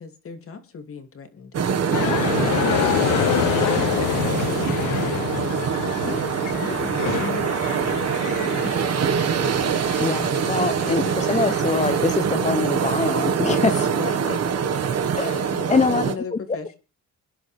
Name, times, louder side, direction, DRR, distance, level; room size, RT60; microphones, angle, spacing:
voice 1, 0.0-1.5 6.0-9.6 13.8-14.6 15.5-16.7, left 5 dB, 45° left, 2.9 m, -38 dB
sound 1, 1.5-16.1, right 7 dB, 55° right, 1.8 m, -24 dB
sound 2, 1.9-12.3, left 14 dB, 80° left, 0.7 m, -28 dB
voice 2, 10.0-13.9 15.1-16.4, left 4 dB, 25° left, 0.9 m, -24 dB
27.5 x 10.5 x 3.5 m
cardioid pair, 90°, 30 cm